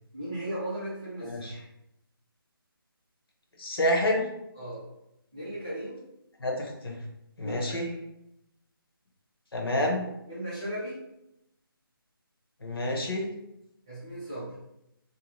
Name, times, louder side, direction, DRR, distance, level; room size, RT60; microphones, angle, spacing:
voice 1, 0.1-1.7 4.5-4.8 5.3-6.0 7.4-8.0 10.3-11.0 13.9-14.5, right 1 dB, 10° right, -12 dB, 0.5 m, -37 dB
voice 2, 1.2-1.5 3.6-4.2 6.4-7.0 7.4-7.9 9.5-10.1 12.6-13.3, left 1 dB, 75° left, 1 dB, 0.8 m, -28 dB
2.7 x 2.1 x 2.9 m, 0.84 s
hypercardioid pair, 180°, 13 cm